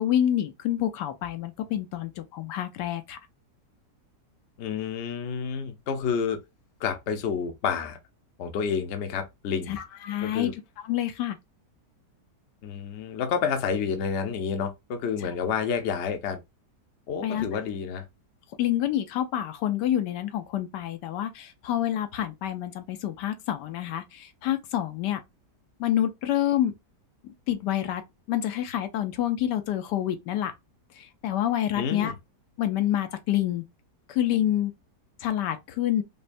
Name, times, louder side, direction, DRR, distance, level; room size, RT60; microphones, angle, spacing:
voice 1, 0.0-3.2 9.7-10.5 10.8-11.4 17.2-17.5 18.6-25.2 25.8-26.7 27.5-28.0 28.3-30.5 31.0-32.1 32.6-33.6 34.1-34.7 35.2-36.0, left 11 dB, 80° left, 1.2 m, -27 dB
voice 2, 4.6-6.4 6.8-8.0 8.4-9.8 10.2-10.5 12.6-16.4 17.1-18.1 31.8-32.1, left 6 dB, 55° left, 0.8 m, -29 dB
5.2 x 2.2 x 2.5 m
omnidirectional pair, 1.8 m